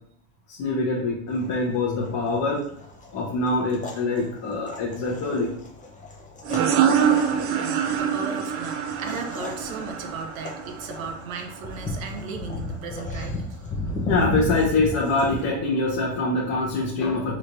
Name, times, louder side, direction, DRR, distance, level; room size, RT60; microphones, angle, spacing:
voice 1, 0.5-2.6 3.1-5.5 6.9-7.5 9.8-10.1 14.0-17.4, left 2 dB, 50° left, -4 dB, 1.1 m, -25 dB
sound 1, 1.3-15.4, left 2 dB, 20° left, 0.8 m, -35 dB
sound 2, 6.4-11.8, right 8 dB, 35° right, 0.4 m, -25 dB
voice 2, 7.4-13.4, right 4 dB, 85° right, 4 dB, 0.8 m, -36 dB
4.2 x 3.1 x 2.6 m, 0.67 s
hypercardioid pair, 105°, 40 cm